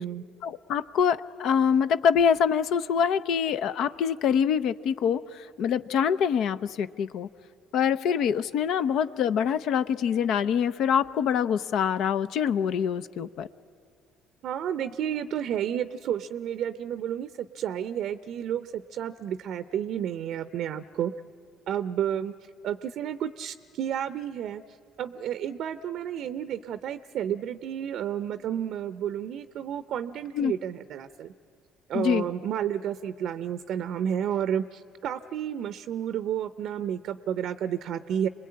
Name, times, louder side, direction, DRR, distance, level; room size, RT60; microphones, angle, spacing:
voice 1, 0.4-7.3 7.7-13.5 30.3-30.5 31.9-32.2, left 7 dB, 65° left, 13 dB, 0.6 m, -25 dB
voice 2, 14.4-21.1 21.7-22.3 22.6-24.6 25.0-31.3 31.9-38.3, right 9 dB, 65° right, 12 dB, 0.6 m, -31 dB
27.5 x 21.0 x 8.7 m, 2.2 s
hypercardioid pair, 60°, 0 cm